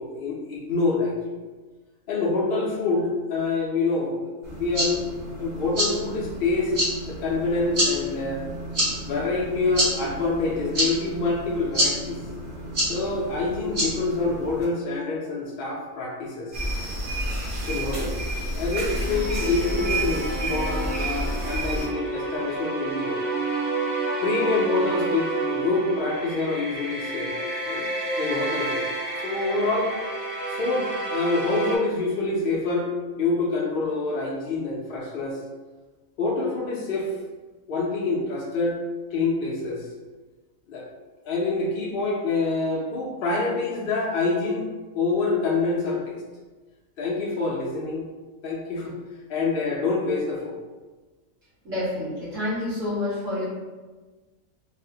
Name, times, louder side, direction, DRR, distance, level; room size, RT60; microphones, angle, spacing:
voice 1, 0.0-1.4 2.1-5.0 5.4-6.7 7.1-8.4 9.0-12.2 12.9-16.5 17.7-18.2 18.6-23.2 24.2-27.9 28.2-28.9 29.2-29.9 30.5-32.9 33.1-35.4 36.2-37.1 37.7-38.8 39.1-39.9 40.7-40.9 41.2-44.7 44.9-46.2 47.0-48.1 48.4-48.9 49.3-50.6, left 3 dB, 65° left, -4 dB, 0.6 m, -26 dB
sound 1, 4.4-14.6, equal, 85° right, 2.1 m, -29 dB
sound 2, 16.5-21.9, right 1 dB, 45° right, 1.0 m, -28 dB
sound 3, 18.9-31.8, right 2 dB, 20° left, 0.6 m, -30 dB
voice 2, 51.6-53.5, left 1 dB, 65° right, -10 dB, 1.9 m, -28 dB
4.0 x 2.0 x 2.7 m, 1.3 s
omnidirectional pair, 1.4 m